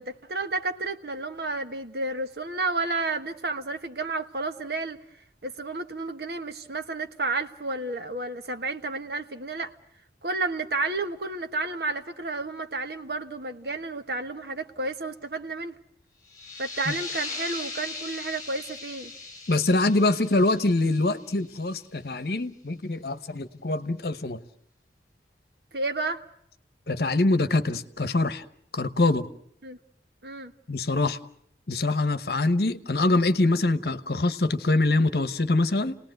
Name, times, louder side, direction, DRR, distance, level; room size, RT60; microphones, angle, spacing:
voice 1, 0.0-5.0 5.4-9.7 10.2-15.7 16.6-19.1 25.7-26.2 29.6-29.8 30.2-30.5, right 3 dB, 65° right, 8 dB, 1.3 m, -31 dB
sound 1, 16.2-21.6, left 3 dB, 20° left, 3.5 m, -39 dB
voice 2, 19.5-24.4 26.9-28.4 28.7-29.3 30.7-31.2 31.7-36.0, left 2 dB, 60° left, 11 dB, 1.1 m, -24 dB
29.5 x 19.0 x 7.9 m, 0.75 s
head